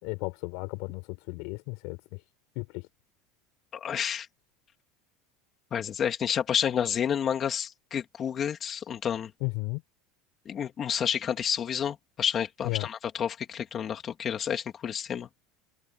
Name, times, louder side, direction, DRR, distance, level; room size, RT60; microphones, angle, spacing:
voice 1, 0.0-2.2 2.5-2.9 9.4-9.8 12.6-12.9, left 29 dB, 60° left, 6.2 m, -34 dB
voice 2, 3.7-4.3 5.7-9.3 10.4-15.3, left 8 dB, 25° left, 3.0 m, -30 dB
supercardioid pair, 155°, 0 cm